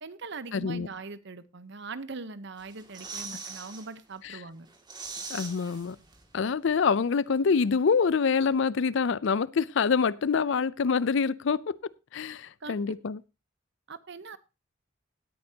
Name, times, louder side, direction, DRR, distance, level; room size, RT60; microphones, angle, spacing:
voice 1, 0.0-4.7 12.6-12.8 13.9-14.4, right 4 dB, 60° right, 0.9 m, -41 dB
voice 2, 0.5-0.9 4.2-4.4 5.3-6.0 6.3-11.8 12.1-13.2, left 5 dB, 65° left, 0.5 m, -26 dB
sound 1, 2.6-3.9 4.3-4.4 4.7-6.4 6.7-6.8, right 4 dB, 20° right, 2.2 m, -41 dB
17.5 x 8.6 x 2.8 m
head